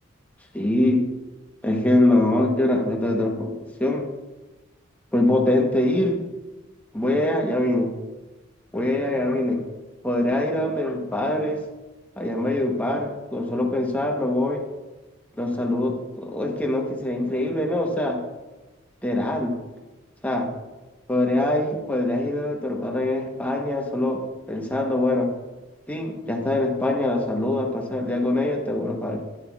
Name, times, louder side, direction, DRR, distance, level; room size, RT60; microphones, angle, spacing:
voice 1, 0.5-1.0 1.6-3.5 3.8-4.1 5.1-6.2 6.9-7.9 8.7-9.6 10.0-11.6 12.2-14.6 15.4-18.2 19.0-19.6 20.2-20.5 21.1-25.3 25.9-29.2, left 1 dB, 5° left, 1 dB, 0.9 m, -23 dB
11.0 x 10.5 x 2.4 m, 1.1 s
head